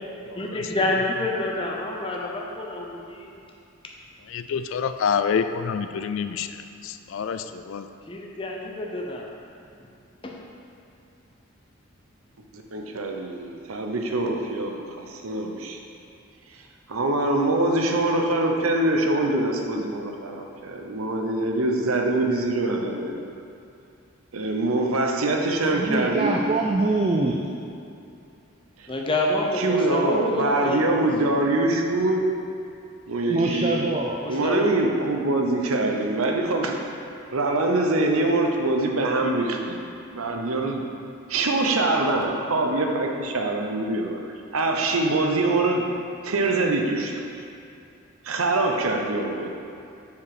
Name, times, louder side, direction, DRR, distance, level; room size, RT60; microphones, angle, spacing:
voice 1, 0.4-3.3 8.1-9.3 10.2-10.3 28.9-31.1 34.2-34.7, left 1 dB, 25° left, -1 dB, 0.6 m, -28 dB
voice 2, 4.3-6.5 6.8-7.9, left 6 dB, 65° left, 9 dB, 0.3 m, -27 dB
voice 3, 12.5-15.8 16.9-23.2 24.3-26.4 28.8-28.9 29.5-32.2 33.1-33.9 34.2-36.8 37.3-39.8 40.1-40.8 41.3-44.2 44.5-45.9 46.2-47.2 48.2-49.5, right 2 dB, 85° right, 2 dB, 0.8 m, -24 dB
voice 4, 25.7-27.4 33.3-34.2, right 2 dB, 30° right, 0 dB, 0.4 m, -24 dB
6.8 x 4.8 x 5.0 m, 2.6 s
head